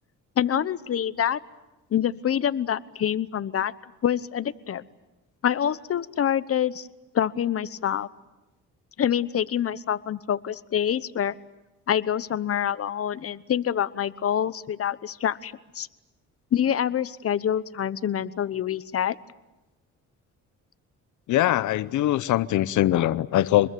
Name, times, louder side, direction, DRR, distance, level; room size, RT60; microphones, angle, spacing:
voice 1, 0.4-1.4 1.9-3.7 4.0-4.8 5.4-6.9 7.1-8.1 9.0-11.3 11.9-15.9 16.5-19.2, left 9 dB, 50° left, 1.0 m, -26 dB
voice 2, 21.3-23.7, left 14 dB, 80° left, 0.8 m, -22 dB
26.5 x 21.5 x 9.2 m
cardioid pair, 90°, 30 cm